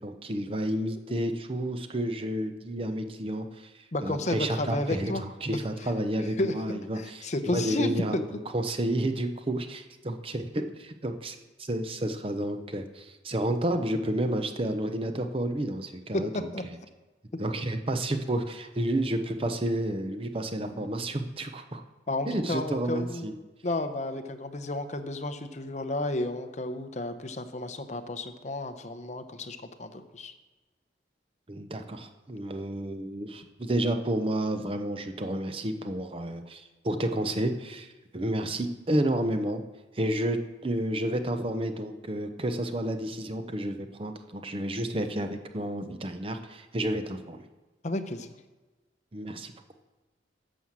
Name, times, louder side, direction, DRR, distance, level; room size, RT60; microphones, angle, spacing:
voice 1, 0.0-8.2 8.5-16.5 17.4-21.8 22.3-23.3 31.5-39.6 39.9-40.4 40.6-47.4 49.1-49.5, right 1 dB, 30° right, 7 dB, 0.7 m, -31 dB
voice 2, 3.9-5.2 5.8-5.9 6.4-8.2 16.1-16.6 22.1-23.3 23.6-30.3 47.8-48.3, left 2 dB, 40° left, 8 dB, 0.8 m, -32 dB
11.5 x 6.3 x 7.3 m, 1.2 s
head